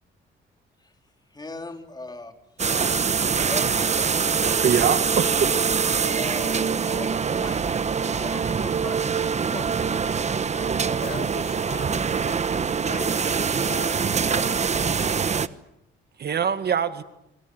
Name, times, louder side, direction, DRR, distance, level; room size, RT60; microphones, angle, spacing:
voice 1, 1.3-2.3 3.2-4.6 6.1-11.2, left 2 dB, 20° left, 5 dB, 3.9 m, -39 dB
sound 1, 2.6-15.5, right 6 dB, 35° right, 1.0 m, -24 dB
voice 2, 4.6-5.5 16.2-17.0, right 7 dB, 55° right, 11 dB, 1.8 m, -24 dB
voice 3, 11.0-15.0, left 5 dB, 50° left, 10 dB, 5.9 m, -40 dB
25.0 x 24.5 x 7.9 m, 0.83 s
cardioid pair, 90°, 20 cm